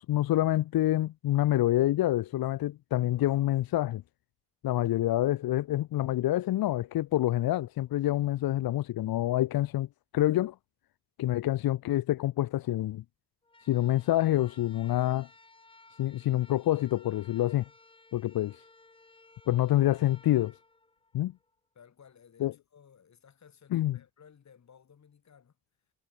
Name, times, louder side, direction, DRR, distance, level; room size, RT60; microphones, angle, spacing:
voice 1, 0.0-4.0 4.6-9.9 10.1-10.5 11.2-13.0 13.6-15.3 16.0-17.6 18.1-18.6 19.5-20.5 21.1-21.3 22.4-22.5 23.7-24.0, left 14 dB, 85° left, 0.6 m, -27 dB
sound 1, 13.4-21.6, left 2 dB, 15° left, 2.2 m, -58 dB
voice 2, 21.7-25.6, left 7 dB, 50° left, 7.6 m, -57 dB
wide cardioid pair, 170°, 35 cm